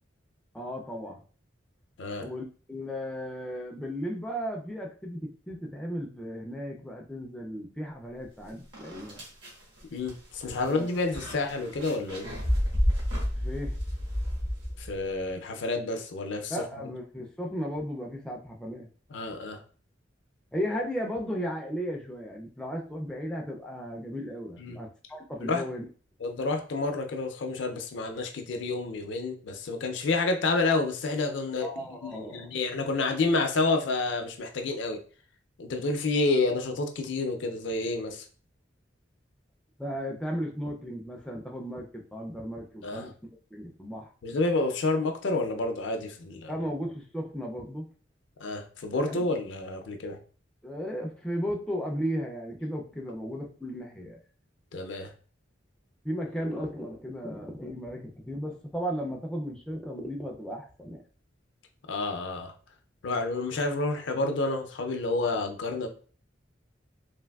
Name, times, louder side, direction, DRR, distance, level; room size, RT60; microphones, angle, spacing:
voice 1, 0.5-1.2 2.2-9.2 10.6-10.9 13.3-13.8 16.5-18.9 20.5-25.8 31.6-32.5 39.8-43.1 43.5-44.1 46.5-47.9 49.1-49.2 50.6-54.2 56.0-61.0, equal, 5° left, -1 dB, 0.3 m, -35 dB
voice 2, 2.0-2.3 9.9-12.3 14.8-16.6 16.8-16.9 19.1-19.6 24.6-24.8 25.4-25.6 26.2-31.7 32.0-35.0 35.6-38.2 42.8-43.1 44.2-46.5 48.4-50.2 54.7-55.1 61.9-62.5 63.0-65.9, left 3 dB, 65° left, 4 dB, 0.4 m, -29 dB
sound 1, 8.2-8.3 8.7-15.1, equal, 75° right, 1.1 m, -31 dB
3.3 x 2.5 x 2.3 m, 0.41 s
head